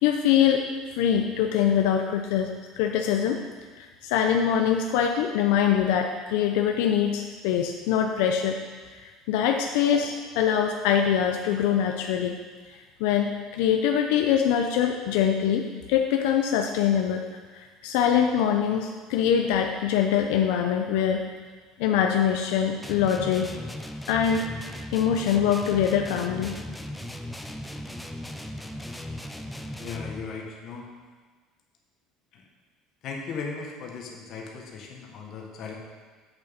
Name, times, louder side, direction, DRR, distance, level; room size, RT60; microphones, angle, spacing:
voice 1, 0.0-0.6 1.0-2.5 2.8-3.4 3.8-8.6 8.9-12.4 13.0-17.2 17.5-21.2 21.8-23.5 24.1-24.5 24.9-26.6, left 8 dB, 85° left, 3 dB, 0.7 m, -23 dB
sound 1, 22.8-30.3, left 1 dB, 5° left, 0.4 m, -37 dB
voice 2, 29.8-30.9 32.3-32.4 33.0-35.8, left 5 dB, 40° left, 0 dB, 1.4 m, -37 dB
8.3 x 7.0 x 5.2 m, 1.4 s
cardioid pair, 175°, 0 cm